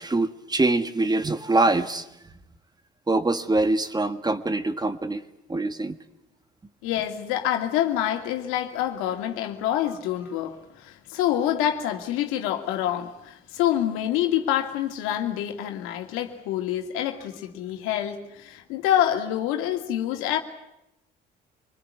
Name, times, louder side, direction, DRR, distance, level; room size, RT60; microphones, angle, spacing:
voice 1, 0.0-2.1 3.1-5.2 5.5-6.0, right 2 dB, 20° right, 11 dB, 1.7 m, -24 dB
voice 2, 6.8-20.4, left 11 dB, 85° left, 5 dB, 2.5 m, -26 dB
26.0 x 21.0 x 9.6 m, 0.87 s
supercardioid pair, 75°, 21 cm